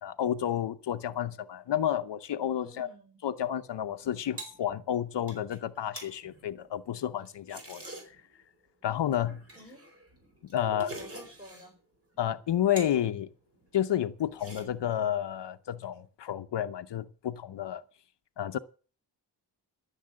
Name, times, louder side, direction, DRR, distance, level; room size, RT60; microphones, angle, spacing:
voice 1, 0.0-2.9 3.2-7.8 8.8-9.4 10.5-10.9 12.2-13.3 13.7-17.8 18.4-18.6, left 10 dB, 75° left, 0.8 m, -30 dB
voice 2, 2.6-3.2 9.5-9.9 10.6-11.7, equal, 10° right, 5.6 m, -49 dB
sound 1, 3.9-8.4 9.1-11.7 12.1-13.0 13.4-13.9 14.2-15.0, right 2 dB, 35° right, 4.5 m, -47 dB
14.0 x 7.1 x 7.6 m
wide cardioid pair, 130°, 42 cm